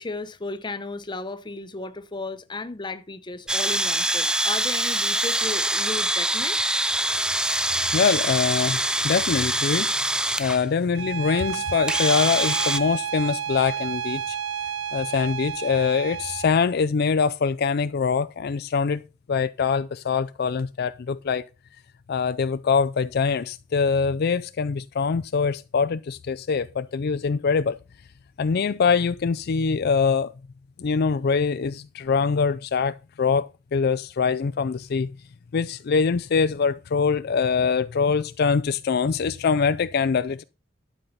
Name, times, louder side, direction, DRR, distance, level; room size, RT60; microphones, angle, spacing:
voice 1, 0.0-6.6, left 3 dB, 25° left, 0.8 m, -34 dB
sound 1, 3.5-10.6 11.5-11.6 11.9-12.8, right 1 dB, 5° right, 0.4 m, -24 dB
voice 2, 7.9-10.1 10.4-14.4 14.9-19.0 19.3-21.4 22.1-27.8 28.4-30.3 30.8-35.1 35.5-40.4, left 5 dB, 55° left, 0.4 m, -23 dB
Bowed string instrument, 10.9-16.5, right 8 dB, 75° right, 0.6 m, -31 dB
12.0 x 5.5 x 5.7 m
head